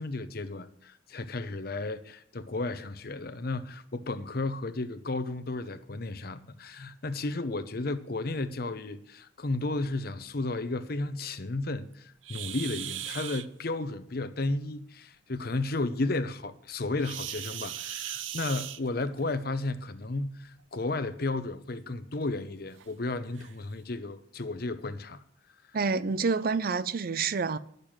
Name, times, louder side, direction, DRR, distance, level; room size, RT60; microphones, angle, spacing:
voice 1, 0.0-25.2, left 2 dB, 50° left, 0.8 m, -33 dB
sound 1, 12.2-13.5 17.0-19.2 20.5-20.6 21.2-21.3 21.9-22.0 22.8-22.9 23.3-23.5, right 11 dB, 85° right, 0.7 m, -38 dB
voice 2, 25.7-27.6, right 4 dB, 50° right, 0.5 m, -28 dB
10.5 x 6.7 x 8.9 m
head